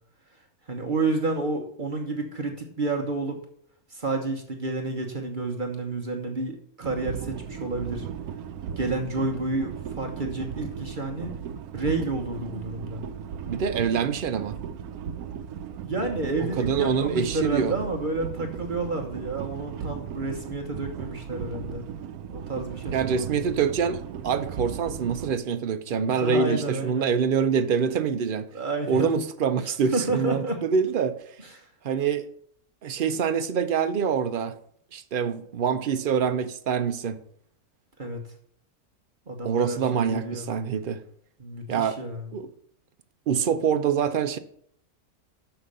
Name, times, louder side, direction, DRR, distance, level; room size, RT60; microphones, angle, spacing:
voice 1, 0.7-3.4 3.9-8.1 8.8-11.3 11.7-13.0 15.8-21.9 22.3-23.5 26.1-27.1 28.5-29.1 29.6-30.6 31.5-31.7 38.0-38.2 39.3-40.5 41.4-42.3, right 2 dB, 35° right, 1.3 m, -30 dB
sound 1, 6.8-25.3, right 8 dB, 80° right, 1.1 m, -36 dB
voice 2, 13.4-14.5 16.6-17.7 22.9-28.5 28.9-31.2 31.8-32.2 32.8-34.5 34.9-37.2 39.4-41.0 41.7-42.0 42.3-42.5 43.3-44.4, right 6 dB, 60° right, 0.5 m, -25 dB
7.1 x 5.8 x 6.5 m
omnidirectional pair, 1.6 m